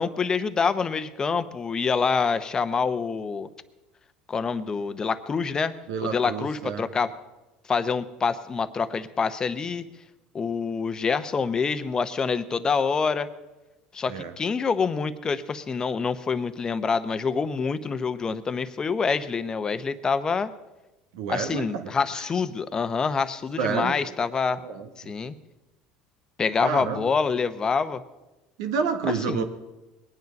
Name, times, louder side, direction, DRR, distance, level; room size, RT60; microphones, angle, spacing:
voice 1, 0.0-3.5 4.3-5.7 6.0-7.1 7.7-9.8 10.3-13.3 13.9-20.5 21.3-24.6 25.0-25.3 26.4-28.0 29.3-29.4, left 5 dB, 25° left, 12 dB, 0.9 m, -26 dB
voice 2, 5.9-6.8 14.1-14.3 21.1-22.2 23.6-23.9 24.6-25.1 26.6-27.1 28.6-29.4, right 6 dB, 85° right, 7 dB, 1.6 m, -29 dB
21.5 x 9.5 x 5.3 m, 1.0 s
supercardioid pair, 110°, 3 cm